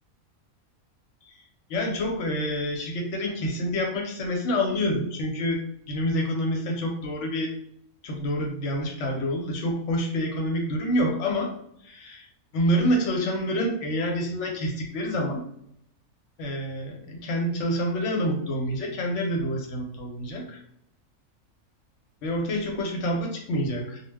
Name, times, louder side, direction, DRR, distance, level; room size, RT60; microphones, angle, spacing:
voice 1, 1.7-5.6 5.9-7.5 8.0-11.5 11.8-12.3 12.5-15.4 16.4-20.6 22.2-24.0, equal, 65° left, 1 dB, 0.9 m, -27 dB
2.3 x 2.1 x 3.3 m, 0.71 s
omnidirectional pair, 1.5 m